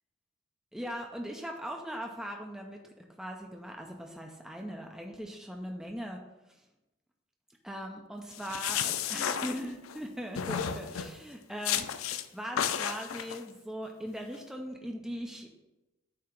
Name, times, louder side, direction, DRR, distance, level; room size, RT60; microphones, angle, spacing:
voice 1, 0.7-6.2 7.6-11.8 12.3-15.5, equal, 5° right, 1 dB, 0.5 m, -40 dB
sound 1, 8.3-10.0 10.4-11.2 11.6-12.2 12.6-13.4, left 8 dB, 85° left, 0.4 m, -32 dB
8.5 x 2.9 x 5.7 m, 0.98 s
head